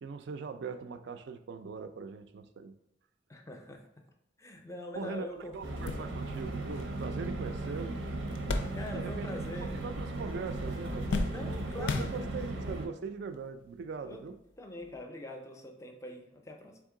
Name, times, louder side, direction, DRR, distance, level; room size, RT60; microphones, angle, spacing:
voice 1, 0.0-2.7 4.9-8.0 8.8-14.4, right 5 dB, 65° right, 9 dB, 0.4 m, -41 dB
voice 2, 3.3-3.8 4.4-6.1 8.7-9.7 11.3-12.1 14.0-14.2 14.6-16.8, left 1 dB, 15° left, 4 dB, 0.5 m, -43 dB
sound 1, 5.0-5.1 5.5-9.3 9.6-10.3 10.6-12.7 13.4-13.5 14.8-15.0, left 3 dB, 75° left, 0.4 m, -37 dB
sound 2, 5.6-12.9, right 2 dB, 90° right, 0.7 m, -37 dB
3.6 x 3.4 x 3.7 m, 0.80 s
head